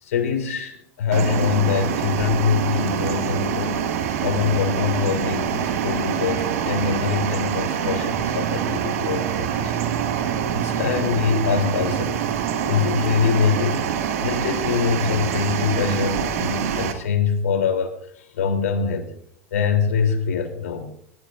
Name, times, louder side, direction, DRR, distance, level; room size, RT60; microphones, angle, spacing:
voice 1, 0.0-3.8 4.2-9.9 10.5-12.2 12.7-13.9 14.2-19.1 19.5-20.9, left 6 dB, 85° left, 4 dB, 3.4 m, -24 dB
sound 1, 1.1-16.9, right 8 dB, 80° right, 1.9 m, -25 dB
24.5 x 14.0 x 2.6 m, 0.69 s
hypercardioid pair, 105°, 8 cm